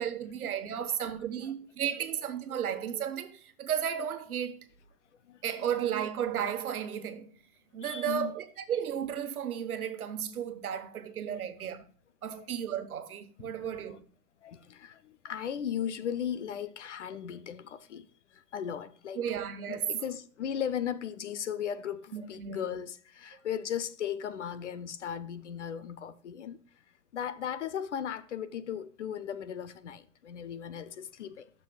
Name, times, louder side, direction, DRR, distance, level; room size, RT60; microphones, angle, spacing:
voice 1, 0.0-4.6 5.4-7.3 7.7-11.9 12.2-14.0 19.2-20.0 22.1-22.7, right 9 dB, 60° right, 1.2 m, -34 dB
voice 2, 7.8-8.3 13.4-14.0 14.4-19.2 19.7-26.6 27.1-31.5, left 9 dB, 50° left, 0.6 m, -37 dB
11.5 x 6.8 x 2.3 m
hypercardioid pair, 155°, 48 cm